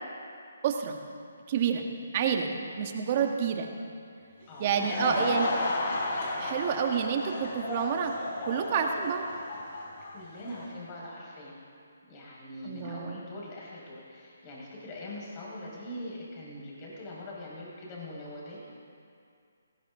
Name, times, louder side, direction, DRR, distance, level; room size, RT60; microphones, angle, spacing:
voice 1, 0.6-1.0 1.5-1.9 2.1-3.7 4.6-5.5 6.4-8.1 8.5-9.3 12.6-13.2, right 7 dB, 35° right, 3 dB, 1.4 m, -29 dB
Laughter / Crowd, 4.4-10.7, left 2 dB, 50° left, 3.4 m, -33 dB
voice 2, 4.5-5.3 10.1-11.6 12.1-18.6, left 1 dB, 30° left, -5 dB, 4.8 m, -42 dB
19.0 x 17.0 x 3.6 m, 2.4 s
hypercardioid pair, 155°, 0 cm